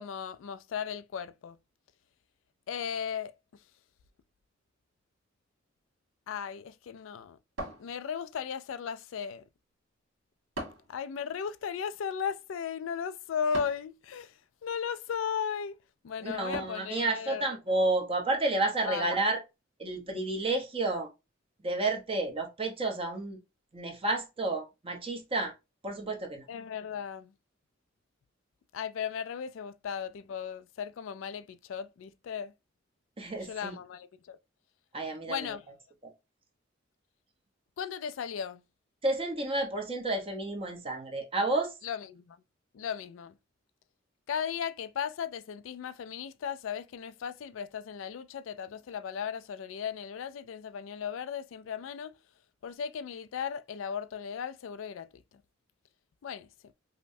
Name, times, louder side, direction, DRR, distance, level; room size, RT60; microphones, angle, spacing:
voice 1, 0.0-1.6 2.7-3.3 6.3-7.4 7.8-9.4 10.9-17.5 18.8-19.1 26.5-27.3 28.7-32.5 33.4-34.4 35.3-35.7 37.8-38.6 41.8-42.4 42.7-43.3 44.3-52.1 52.6-55.4 56.2-56.7, left 7 dB, 75° left, 0.3 m, -36 dB
sound 1, 7.6-8.5 10.5-11.0 13.5-13.9 16.5-17.0, right 1 dB, 75° right, 1.5 m, -40 dB
voice 2, 16.2-19.4 19.8-21.1 21.6-23.4 23.7-25.5 25.8-26.4 33.2-33.7 34.9-35.5 39.0-41.7, right 2 dB, 30° right, 0.8 m, -31 dB
5.2 x 2.1 x 2.6 m
head